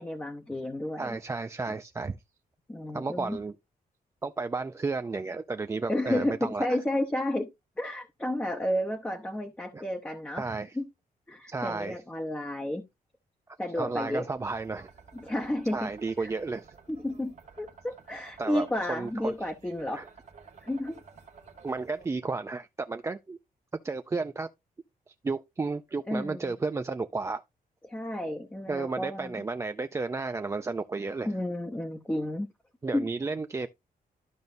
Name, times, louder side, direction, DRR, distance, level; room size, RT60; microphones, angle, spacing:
voice 1, 0.0-1.2 2.7-3.4 5.9-7.5 7.8-10.4 10.8-10.9 11.3-12.8 13.6-14.2 15.1-15.9 16.2-16.3 16.9-20.0 20.6-21.0 26.1-26.5 27.8-29.4 31.3-32.5 32.9-33.0, left 1 dB, 10° left, 0.8 m, -31 dB
voice 2, 1.0-2.2 2.9-3.5 4.2-6.7 9.7-9.8 10.4-10.8 11.5-12.0 13.7-14.9 15.7-16.7 18.4-19.3 19.9-20.1 21.6-23.4 23.8-24.5 25.2-27.4 28.7-31.3 32.8-33.7, right 3 dB, 20° right, 0.3 m, -32 dB
sound 1, 14.2-22.0, right 5 dB, 45° right, 1.4 m, -53 dB
12.5 x 5.3 x 2.6 m
wide cardioid pair, 140°, 16 cm